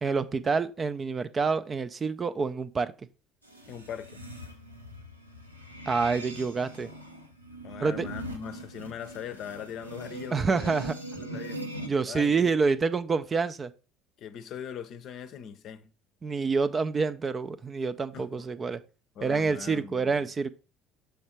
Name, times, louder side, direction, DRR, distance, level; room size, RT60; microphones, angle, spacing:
voice 1, 0.0-2.9 5.9-6.9 7.8-8.1 10.3-10.9 11.8-13.7 16.2-18.8 19.2-20.5, right 4 dB, 30° right, 0.4 m, -27 dB
sound 1, 3.4-11.9, right 1 dB, 85° right, 0.7 m, -41 dB
voice 2, 3.7-4.2 7.6-10.7 11.2-11.6 12.1-12.5 14.2-15.9 18.1-18.5 19.1-20.3, left 8 dB, 50° left, 0.6 m, -40 dB
7.1 x 3.4 x 4.3 m
figure-of-eight pair, 60°, 0 cm